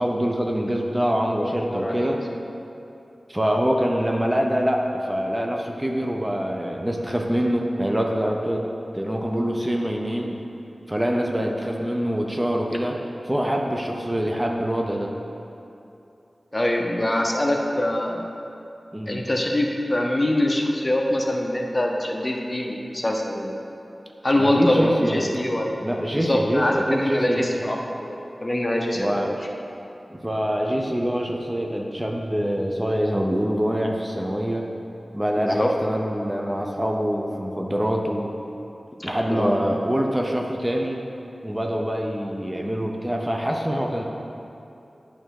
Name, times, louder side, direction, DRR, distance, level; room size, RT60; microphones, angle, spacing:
voice 1, 0.0-2.2 3.3-8.7 8.9-10.3 10.9-13.0 13.2-15.1 18.9-19.3 24.4-25.3 25.8-27.6 29.0-29.4 30.2-34.7 35.1-38.3 39.0-41.0 41.4-44.0, equal, 20° right, 1 dB, 0.6 m, -25 dB
voice 2, 1.4-2.1 11.3-11.6 16.5-18.2 19.1-23.6 24.2-25.9 26.1-29.1 35.4-35.7 39.0-39.5, left 1 dB, 25° left, 1 dB, 0.8 m, -24 dB
8.9 x 3.4 x 6.4 m, 2.8 s
wide cardioid pair, 55°, 0 cm